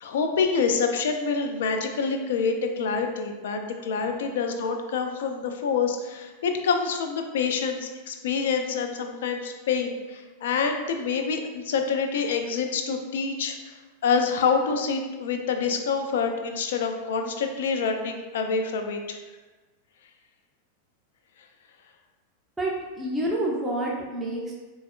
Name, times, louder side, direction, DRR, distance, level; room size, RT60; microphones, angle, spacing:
voice 1, 0.0-13.7 14.0-19.2, left 5 dB, 60° left, 5 dB, 0.3 m, -27 dB
voice 2, 22.6-24.5, right 1 dB, 10° right, -4 dB, 0.5 m, -28 dB
4.0 x 2.3 x 2.2 m, 1.2 s
figure-of-eight pair, 90°, 0 cm